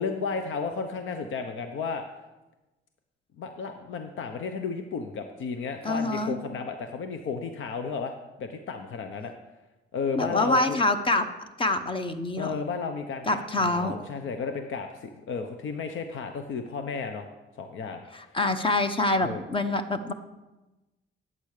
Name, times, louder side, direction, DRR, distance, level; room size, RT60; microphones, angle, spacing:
voice 1, 0.0-2.0 3.4-8.1 8.4-9.3 9.9-10.8 12.4-17.3 17.6-18.4 19.2-19.4, left 5 dB, 75° left, 6 dB, 1.0 m, -33 dB
voice 2, 5.8-6.4 10.1-11.3 11.6-12.6 13.3-13.9 18.1-20.1, left 2 dB, 25° left, 9 dB, 1.1 m, -26 dB
12.0 x 9.1 x 6.7 m, 1.1 s
cardioid pair, 120°, 20 cm